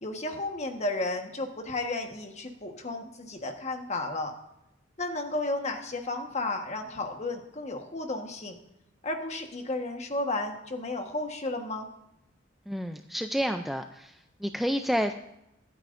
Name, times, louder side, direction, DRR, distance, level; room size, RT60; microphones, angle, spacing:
voice 1, 0.0-4.3 5.0-8.6 9.0-11.9, left 2 dB, 35° left, 4 dB, 1.4 m, -33 dB
voice 2, 12.7-15.1, equal, ahead, 6 dB, 0.4 m, -30 dB
23.5 x 9.1 x 2.6 m, 0.85 s
head